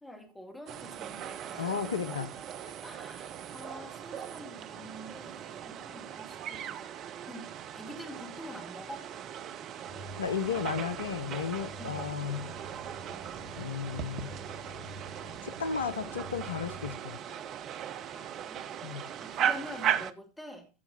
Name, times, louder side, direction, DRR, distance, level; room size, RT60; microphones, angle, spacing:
voice 1, 0.0-2.0 2.8-6.9 7.3-7.5 7.7-9.1 11.8-12.0 18.1-18.7 19.2-20.7, equal, 5° left, 2.4 m, -46 dB
sound 1, 0.7-20.1, right 9 dB, 30° right, 0.6 m, -38 dB
voice 2, 1.5-2.3 10.2-12.5 13.6-14.3 15.4-17.4 18.8-19.1, left 6 dB, 70° left, 0.7 m, -34 dB
sound 2, 9.9-17.0, equal, 50° right, 3.7 m, -47 dB
14.5 x 5.8 x 4.1 m
figure-of-eight pair, 90°, 0 cm